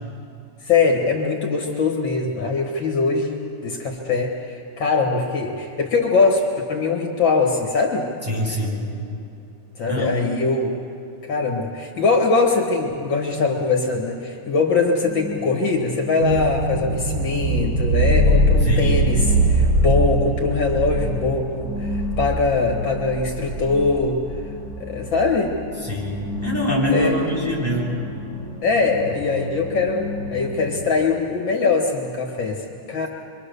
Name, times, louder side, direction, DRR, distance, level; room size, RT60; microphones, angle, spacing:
voice 1, 0.6-3.3 3.6-8.1 9.8-10.7 11.2-24.2 24.8-25.6 26.9-27.4 28.6-33.1, left 4 dB, 70° left, 1 dB, 2.4 m, -22 dB
voice 2, 8.2-8.8 9.9-10.1 18.6-19.0 25.8-27.9, equal, 5° left, -5 dB, 7.6 m, -24 dB
sound 1, 15.1-15.4 16.2-30.8, right 1 dB, 70° right, 6.3 m, -23 dB
26.5 x 24.5 x 6.8 m, 2.7 s
omnidirectional pair, 2.2 m